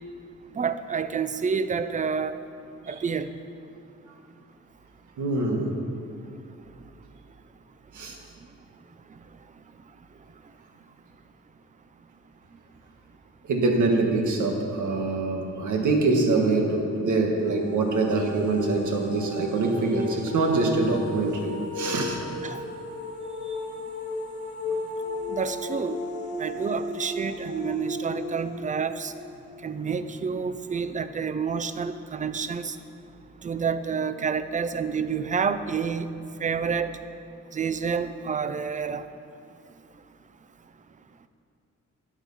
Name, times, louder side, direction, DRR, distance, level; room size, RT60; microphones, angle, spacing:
voice 1, 0.6-2.4 2.9-3.3 22.4-22.6 25.3-26.0 26.4-29.1 29.6-32.8 33.4-36.1 36.4-36.9 37.5-39.0, right 6 dB, 25° right, 12 dB, 0.4 m, -28 dB
voice 2, 5.2-5.9 7.9-8.2 13.4-22.2 23.4-23.6, right 3 dB, 85° right, 2 dB, 1.7 m, -24 dB
sound 1, 17.4-30.2, left 2 dB, 25° left, 1.6 m, -35 dB
12.5 x 9.1 x 5.6 m, 2.5 s
wide cardioid pair, 155°, 30 cm